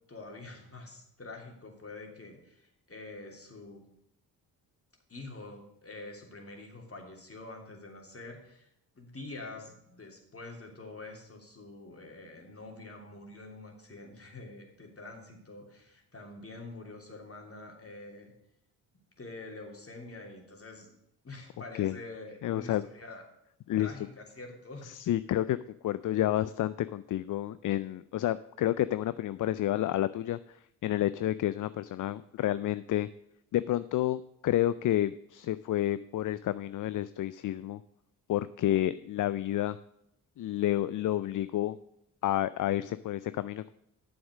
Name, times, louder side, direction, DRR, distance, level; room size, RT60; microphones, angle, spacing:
voice 1, 0.1-3.8 5.1-8.7 8.9-18.3 19.2-21.0 21.2-23.2 23.8-25.0, left 2 dB, 30° left, 1 dB, 3.0 m, -46 dB
voice 2, 22.4-22.8 23.7-23.9 24.8-25.6 25.8-33.1 33.5-37.8 38.3-39.8 40.4-41.8 42.2-43.7, left 13 dB, 45° left, 15 dB, 0.5 m, -30 dB
9.6 x 7.1 x 6.3 m, 0.79 s
supercardioid pair, 50°, 44 cm